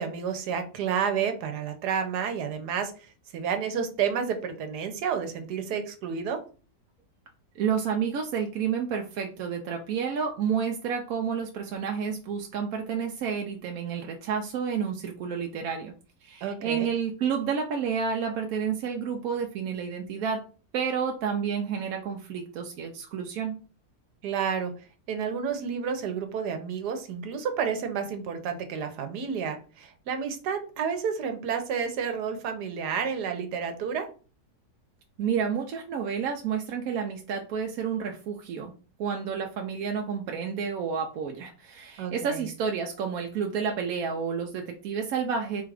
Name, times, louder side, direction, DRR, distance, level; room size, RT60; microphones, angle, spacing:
voice 1, 0.0-2.9 3.3-6.4 16.4-16.9 24.2-24.7 25.1-34.1 42.0-42.5, right 7 dB, 90° right, 7 dB, 1.4 m, -30 dB
voice 2, 7.6-15.9 16.2-20.4 20.7-23.5 35.2-38.7 39.0-45.6, right 6 dB, 70° right, 2 dB, 1.0 m, -30 dB
4.1 x 2.4 x 4.7 m, 0.37 s
omnidirectional pair, 1.7 m